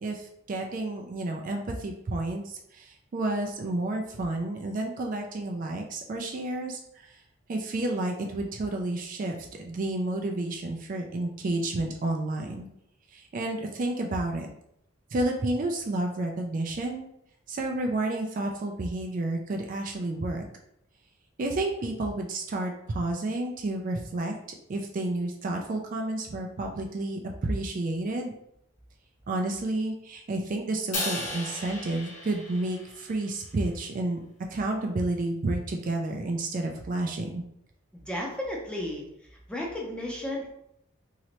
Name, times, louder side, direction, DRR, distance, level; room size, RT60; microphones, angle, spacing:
voice 1, 0.0-7.2 7.5-12.7 13.1-14.5 15.1-17.1 17.5-20.5 21.4-24.3 24.7-28.3 29.3-34.2 34.5-37.4, right 2 dB, 40° right, 2 dB, 0.3 m, -30 dB
Crash cymbal, 30.9-33.3, left 1 dB, 35° left, 1.0 m, -35 dB
voice 2, 37.9-39.0 39.3-40.5, left 1 dB, 5° left, -2 dB, 0.6 m, -34 dB
3.0 x 2.8 x 2.9 m, 0.76 s
head